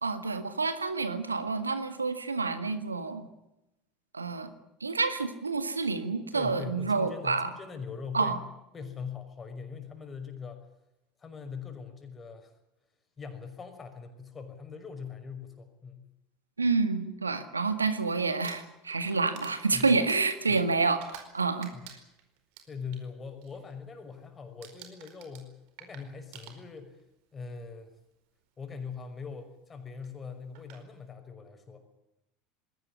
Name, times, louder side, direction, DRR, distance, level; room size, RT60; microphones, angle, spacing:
voice 1, 0.0-3.3 4.1-4.5 4.8-7.5 8.1-8.4 16.6-21.7, right 4 dB, 90° right, 11 dB, 1.8 m, -28 dB
voice 2, 6.3-8.4 8.7-10.6 11.2-12.5 13.2-16.1 19.7-20.0 20.5-20.6 21.7-21.9 22.7-27.0 27.3-27.9 28.6-31.8, left 5 dB, 25° left, 6 dB, 5.8 m, -42 dB
Crumpling crinkling, 18.3-21.4 21.6-23.0 23.4-23.7 24.0-24.3 24.6-27.0 27.9-28.0 30.0-30.1 30.5-30.8, right 9 dB, 60° right, 4.7 m, -50 dB
21.0 x 17.5 x 9.9 m, 0.92 s
figure-of-eight pair, 75°, 0 cm